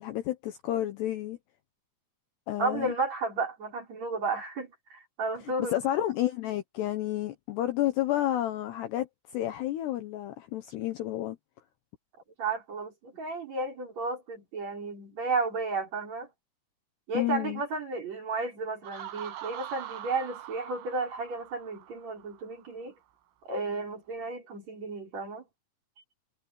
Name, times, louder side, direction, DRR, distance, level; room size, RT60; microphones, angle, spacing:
voice 1, 0.0-1.4 2.5-2.9 5.7-9.1 9.3-11.4 17.1-17.6, left 13 dB, 70° left, 2.7 m, -30 dB
voice 2, 2.6-5.8 12.4-16.3 17.1-22.9 23.5-25.4, right 3 dB, 35° right, 5.4 m, -33 dB
Laughter, 18.8-22.5, right 13 dB, 80° right, 8.2 m, -43 dB
omnidirectional pair, 5.8 m